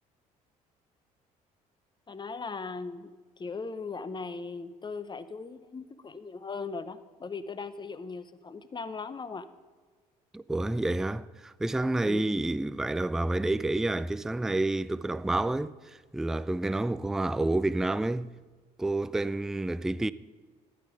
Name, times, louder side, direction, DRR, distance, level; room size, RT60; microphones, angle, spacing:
voice 1, 2.1-3.1 3.4-9.5 12.0-12.3, left 4 dB, 25° left, 0.8 m, -38 dB
voice 2, 10.3-18.3 18.8-20.1, right 2 dB, ahead, 0.3 m, -29 dB
11.5 x 9.1 x 4.9 m
hypercardioid pair, 55°, 19 cm